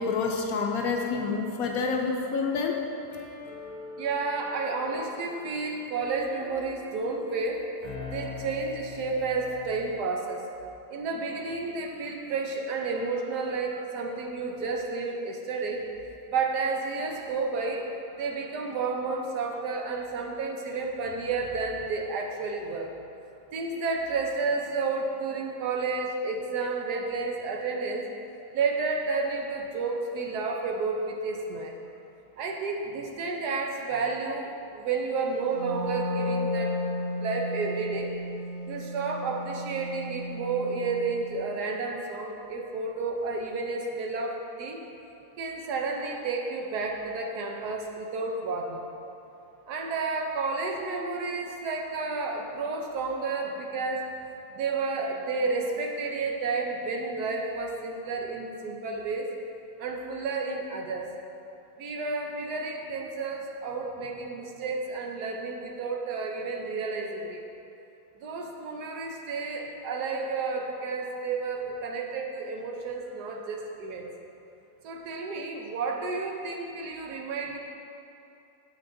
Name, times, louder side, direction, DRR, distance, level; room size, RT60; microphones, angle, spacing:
voice 1, 0.0-2.8, left 4 dB, 70° left, 2 dB, 0.9 m, -28 dB
sound 1, 3.1-10.1, left 5 dB, 25° left, 0.8 m, -43 dB
voice 2, 4.0-7.6 8.1-10.4 10.9-15.8 16.3-17.9 18.2-22.9 23.5-28.1 28.5-31.7 32.4-36.8 37.2-38.1 38.7-44.8 45.4-48.8 49.7-54.1 54.5-59.2 59.8-61.1 61.8-67.4 68.2-74.1 74.8-77.6, right 4 dB, 75° right, 2 dB, 1.3 m, -31 dB
Wind instrument woodwind instrument, 35.5-41.2, left 1 dB, 60° right, 1.7 m, -33 dB
8.9 x 6.8 x 2.6 m, 2.8 s
omnidirectional pair, 1.7 m